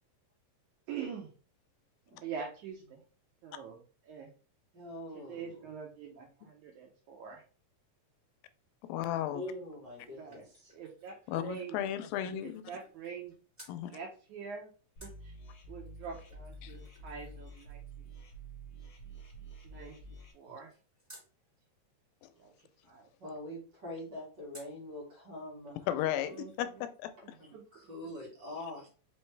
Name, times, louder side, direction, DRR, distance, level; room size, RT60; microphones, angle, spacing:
voice 1, 0.9-1.3 2.2-3.0 3.4-4.3 5.1-7.4 10.2-10.4 10.7-11.8 12.4-13.3 13.9-14.7 15.0-15.3 15.7-17.8 19.6-20.0 20.3-20.7 22.4-23.1 26.2-26.9 27.2-27.9, right 6 dB, 75° right, 1.9 m, -45 dB
voice 2, 4.7-5.6 9.3-10.7 23.2-25.9 27.4-28.9, left 1 dB, 40° right, 1.9 m, -44 dB
voice 3, 8.8-9.4 11.3-12.6 13.7-13.9 16.6-16.7 22.2-22.3 25.9-27.4, left 11 dB, 85° left, 2.3 m, -35 dB
sound 1, 9.6-13.3 13.5-13.8 15.0-21.3 24.5-24.9 25.3-25.4 25.7-26.7 26.9-27.0, equal, 5° right, 1.8 m, -61 dB
sound 2, 15.0-20.3, right 2 dB, 60° left, 1.2 m, -49 dB
5.3 x 3.1 x 3.2 m
omnidirectional pair, 4.0 m